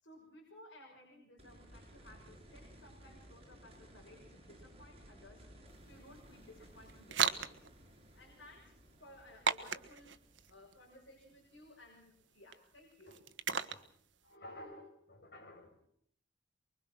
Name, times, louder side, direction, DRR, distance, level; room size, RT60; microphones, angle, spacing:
voice 1, 0.0-5.5 5.8-7.7 8.2-8.7 9.0-10.2 10.5-13.1, left 1 dB, 80° left, 0 dB, 6.2 m, -58 dB
sound 1, 1.4-12.3 14.6-14.7, equal, 35° right, 6.4 m, -59 dB
sound 2, 5.7-14.3, right 7 dB, 80° right, 1.3 m, -40 dB
voice 2, 14.2-15.9, left 1 dB, 60° left, 2 dB, 7.0 m, -53 dB
24.5 x 23.0 x 6.2 m, 0.63 s
head